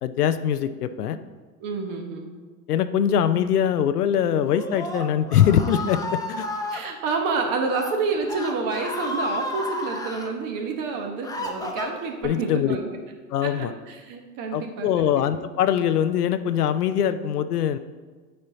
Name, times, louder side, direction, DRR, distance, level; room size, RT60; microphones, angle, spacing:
voice 1, 0.0-1.2 2.7-6.5 12.2-12.8 13.3-13.7 14.5-17.8, left 9 dB, 85° left, 12 dB, 0.6 m, -22 dB
voice 2, 1.6-2.4 6.7-13.0 13.4-15.2, right 4 dB, 45° right, 2 dB, 1.2 m, -29 dB
Screaming, 4.4-6.8 7.6-7.9 8.2-10.3 10.9-12.3, left 2 dB, 10° left, 0.8 m, -32 dB
9.0 x 4.4 x 3.9 m, 1.4 s
hypercardioid pair, 90°, 45 cm